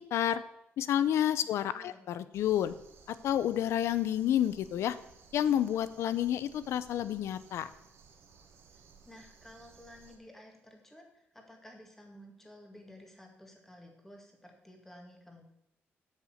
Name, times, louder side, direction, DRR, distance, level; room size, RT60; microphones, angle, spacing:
voice 1, 0.1-0.4 0.8-2.8 3.1-5.0 5.3-7.7, left 11 dB, 85° left, 14 dB, 0.6 m, -29 dB
voice 2, 1.7-2.1 8.7-15.4, left 1 dB, 5° left, 2 dB, 2.0 m, -53 dB
sound 1, 2.3-10.2, right 5 dB, 70° right, 1.6 m, -59 dB
8.2 x 6.6 x 7.8 m, 0.79 s
cardioid pair, 140°, 5 cm